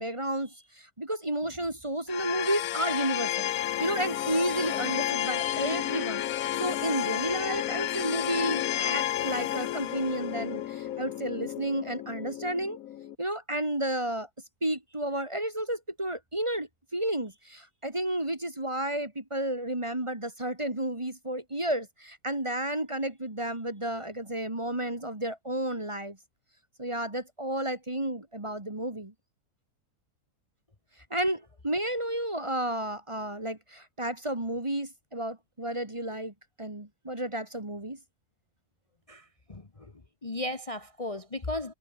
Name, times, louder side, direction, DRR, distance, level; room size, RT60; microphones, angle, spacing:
voice 1, 0.0-3.5 3.8-6.2 6.6-12.8 13.2-14.3 14.6-26.2 26.8-29.1 31.1-38.0, right 1 dB, 20° right, 2.3 m, -32 dB
sound 1, 2.1-13.2, left 12 dB, 65° left, 1.1 m, -31 dB
voice 2, 39.1-39.9 40.2-41.7, left 1 dB, 20° left, 1.4 m, -36 dB
omnidirectional pair, 1.7 m